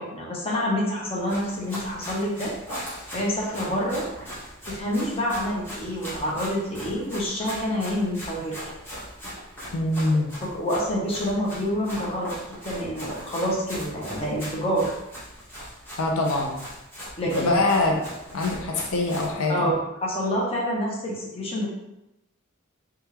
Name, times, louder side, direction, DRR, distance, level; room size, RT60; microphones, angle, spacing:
voice 1, 0.0-2.5 3.1-4.1 4.7-8.7 10.4-12.3 12.6-14.9 17.2-17.6 19.5-19.7 20.0-21.7, equal, 25° left, -3 dB, 0.6 m, -27 dB
Run, 1.1-19.3, equal, 10° left, 1.0 m, -39 dB
voice 2, 9.7-10.4 16.0-16.6 17.2-18.0 18.3-19.7, left 2 dB, 75° left, 0 dB, 0.5 m, -24 dB
3.4 x 2.3 x 2.8 m, 0.91 s
head